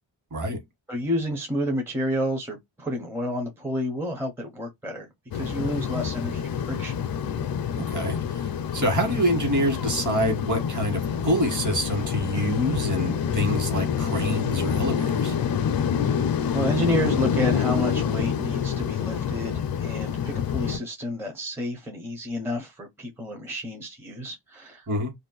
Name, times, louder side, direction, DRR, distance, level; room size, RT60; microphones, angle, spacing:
voice 1, 0.9-5.1 5.3-6.9 16.0-24.9, equal, 5° right, 0.6 m, -30 dB
sound 1, 5.3-20.8, left 7 dB, 50° left, 0.5 m, -27 dB
voice 2, 7.8-15.4 24.9-25.1, equal, 40° right, 1.4 m, -26 dB
2.6 x 2.1 x 3.7 m
wide cardioid pair, 135°, 46 cm